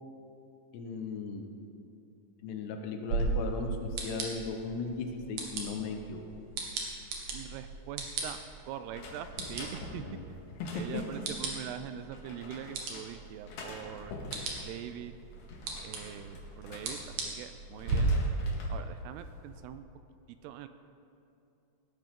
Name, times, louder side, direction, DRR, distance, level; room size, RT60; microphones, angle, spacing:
voice 1, 0.7-1.5 2.4-6.2 10.0-10.3 10.9-11.0, left 4 dB, 80° left, 4 dB, 3.2 m, -37 dB
sound 1, 3.1-18.0, right 4 dB, 60° right, 3.0 m, -39 dB
voice 2, 7.3-8.4 8.7-10.1 10.7-14.1 14.6-15.1 15.8-18.1 18.7-19.8 20.3-20.7, right 10 dB, 85° right, 10 dB, 2.5 m, -43 dB
door locked, 8.9-11.4 12.1-13.1 13.5-14.7 15.2-17.4 17.7-18.8 19.2-19.7, left 2 dB, 60° left, 2.7 m, -46 dB
18.5 x 12.0 x 3.7 m, 2.7 s
omnidirectional pair, 4.9 m